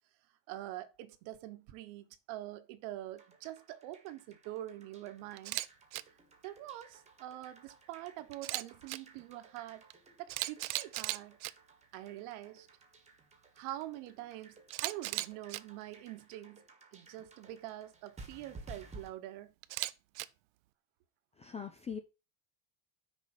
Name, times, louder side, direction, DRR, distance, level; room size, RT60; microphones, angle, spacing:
voice 1, 0.5-5.6 6.4-9.9 10.2-11.4 11.9-12.7 13.6-16.6 16.9-19.5, right 14 dB, 70° right, 1.2 m, -45 dB
sound 1, 3.2-19.1, right 3 dB, 15° right, 1.4 m, -57 dB
Camera, 5.4-5.7 5.9-6.0 8.3-9.0 9.9-10.0 10.3-11.5 14.7-15.6 19.6-20.2, right 19 dB, 90° right, 0.7 m, -36 dB
voice 2, 21.4-22.0, left 6 dB, 15° left, 0.3 m, -41 dB
6.4 x 5.0 x 6.8 m
cardioid pair, 155°, 50 cm